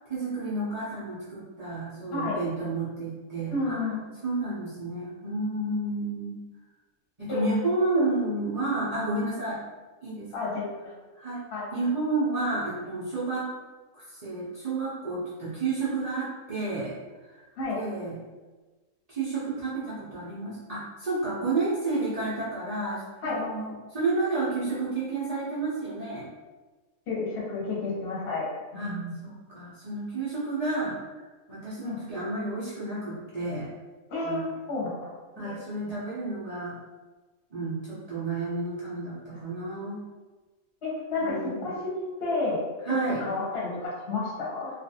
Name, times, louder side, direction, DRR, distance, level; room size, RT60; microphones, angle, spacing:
voice 1, 0.1-3.8 4.2-6.4 7.2-9.6 10.0-10.5 11.2-11.4 11.7-13.5 13.9-16.9 17.2-17.4 17.7-18.2 19.1-26.3 28.7-31.0 31.5-33.7 34.2-34.5 35.4-36.8 37.5-40.0 41.2-41.7 42.8-43.3, right 3 dB, 60° right, -10 dB, 0.4 m, -31 dB
voice 2, 3.5-4.0 7.3-7.5 10.3-10.9 11.5-11.7 17.6-17.8 23.2-23.4 27.1-29.1 31.8-32.0 34.1-34.9 35.4-35.6 40.8-41.7 42.2-42.6 42.9-44.7, left 3 dB, 50° left, -5 dB, 0.9 m, -31 dB
2.4 x 2.3 x 2.7 m, 1.3 s
omnidirectional pair, 1.5 m